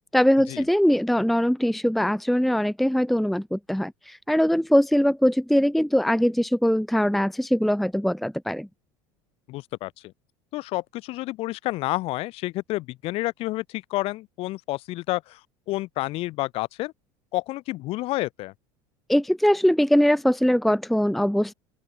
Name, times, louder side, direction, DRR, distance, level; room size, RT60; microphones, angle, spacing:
voice 1, 0.1-8.7 19.1-21.5, equal, ahead, 0.7 m, -21 dB
voice 2, 9.5-10.1 10.5-15.4 15.7-16.9 17.3-18.5, left 19 dB, 60° left, 5.3 m, -29 dB
open air
supercardioid pair, 120°, 11 cm